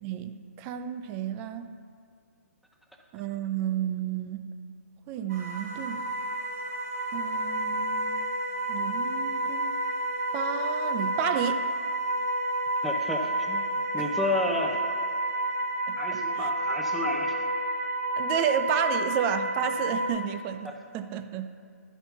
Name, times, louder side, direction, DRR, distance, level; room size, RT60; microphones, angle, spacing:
voice 1, 0.0-1.7 3.1-4.4 5.1-6.0 7.1-8.2 8.7-9.8 10.3-11.6 15.9-16.5 18.2-21.5, right 9 dB, 25° right, 9 dB, 0.4 m, -31 dB
sound 1, 5.3-20.1, right 1 dB, 80° right, 1.9 m, -30 dB
voice 2, 12.8-13.6 13.9-14.8 16.0-17.4 20.6-20.7, left 2 dB, ahead, -1 dB, 0.8 m, -31 dB
11.0 x 4.3 x 5.8 m, 2.1 s
hypercardioid pair, 140°, 8 cm